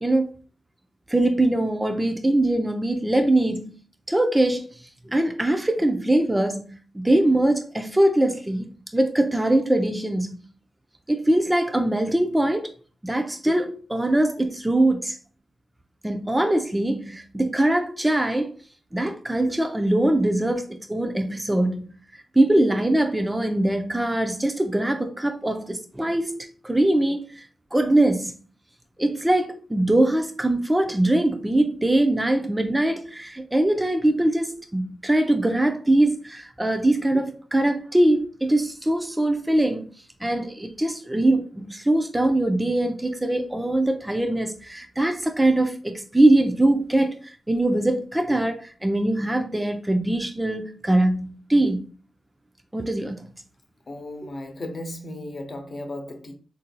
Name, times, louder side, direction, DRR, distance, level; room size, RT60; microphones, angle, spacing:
voice 1, 1.1-3.8 4.1-4.7 5.1-6.7 6.9-10.4 11.1-12.7 13.0-15.2 16.0-18.5 18.9-21.9 22.3-28.3 29.0-39.9 40.2-51.8 52.7-53.3, right 1 dB, 15° right, 0.5 m, -22 dB
voice 2, 53.9-56.3, left 1 dB, 50° left, 0.8 m, -35 dB
3.8 x 2.6 x 2.2 m
supercardioid pair, 50°, 0 cm